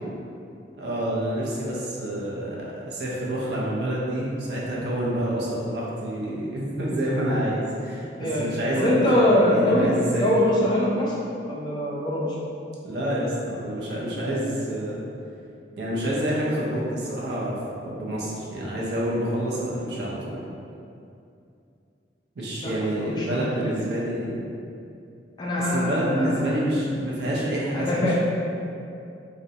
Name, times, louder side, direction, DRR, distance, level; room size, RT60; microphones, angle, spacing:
voice 1, 0.8-10.3 12.8-15.0 15.8-20.4 22.4-24.4 25.6-28.1, right 1 dB, 65° right, -5 dB, 0.5 m, -28 dB
voice 2, 8.2-9.9 10.2-11.2 11.4-12.3 22.6-22.7 23.0-23.7 25.4-26.5 27.7-28.1, left 1 dB, 25° left, -5 dB, 0.3 m, -23 dB
2.4 x 2.1 x 2.7 m, 2.6 s
head